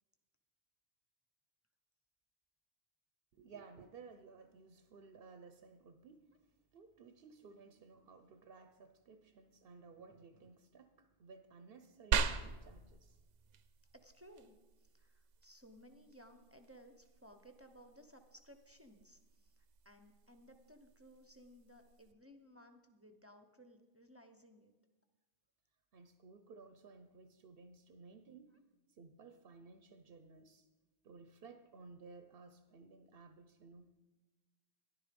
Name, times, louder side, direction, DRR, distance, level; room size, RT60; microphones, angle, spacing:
voice 1, 3.4-6.2 6.7-13.2 25.9-28.5 29.0-30.7 31.0-33.9, right 4 dB, 55° right, 9 dB, 0.9 m, -57 dB
sound 1, 12.1-22.1, right 6 dB, 85° right, 1.1 m, -43 dB
voice 2, 13.9-24.7, equal, 15° right, 5 dB, 0.7 m, -60 dB
13.5 x 11.0 x 5.2 m, 1.2 s
omnidirectional pair, 1.2 m